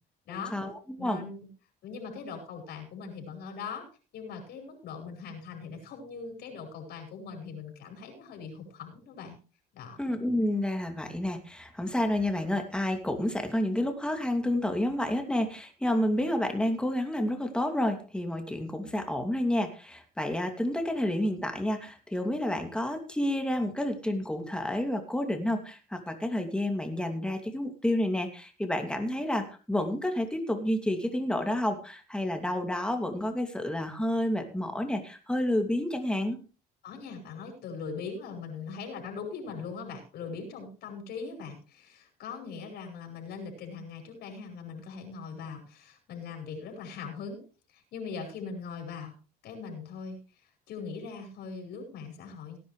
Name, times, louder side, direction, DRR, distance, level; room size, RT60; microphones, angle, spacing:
voice 1, 0.3-1.2 10.0-36.4, left 1 dB, 5° left, 4 dB, 2.6 m, -30 dB
voice 2, 1.0-1.4 1.8-3.9 4.1-9.4 9.7-10.0 36.8-47.4 47.7-49.1 49.4-50.2 50.7-52.6, left 5 dB, 75° left, 2 dB, 5.2 m, -40 dB
18.0 x 10.0 x 3.3 m, 0.36 s
cardioid pair, 110°, 17 cm